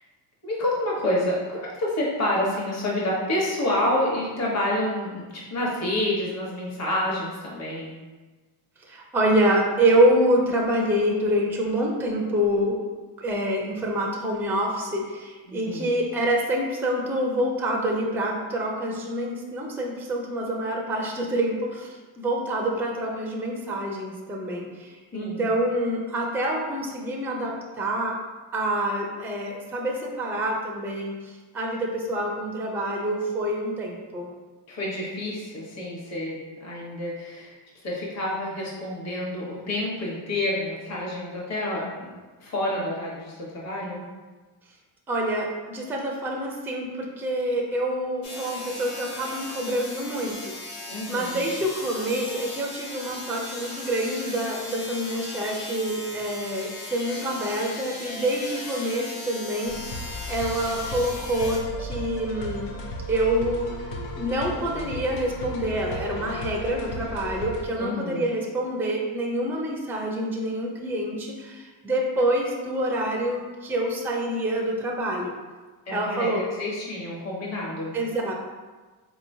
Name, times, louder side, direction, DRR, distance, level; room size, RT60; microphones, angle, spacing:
voice 1, 0.4-5.2 5.5-7.9 15.5-16.0 25.1-25.5 34.7-37.5 37.8-42.1 42.4-44.0 50.9-51.5 67.8-68.3 75.9-77.9, left 1 dB, 35° left, -5 dB, 1.1 m, -28 dB
voice 2, 8.8-12.8 13.2-28.2 28.5-34.3 45.1-50.5 51.1-62.7 63.1-63.8 64.2-75.3 75.9-76.4 77.9-78.3, right 1 dB, 5° right, 0 dB, 0.4 m, -26 dB
sound 1, 48.2-61.6, left 2 dB, 80° left, 1.2 m, -38 dB
sound 2, 59.7-67.7, equal, 55° left, 0.7 m, -35 dB
3.9 x 3.0 x 2.7 m, 1.3 s
cardioid pair, 100°, 47 cm